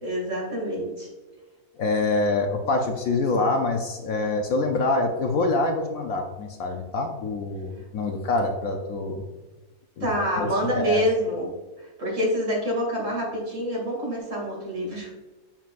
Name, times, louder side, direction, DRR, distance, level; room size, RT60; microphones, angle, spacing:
voice 1, 0.0-1.1 10.0-11.5 11.8-15.1, equal, 50° right, -4 dB, 2.7 m, -27 dB
voice 2, 1.8-9.2 10.0-10.5 10.7-11.0, left 3 dB, 65° left, 3 dB, 1.0 m, -25 dB
7.3 x 5.9 x 2.5 m, 1.2 s
omnidirectional pair, 1.7 m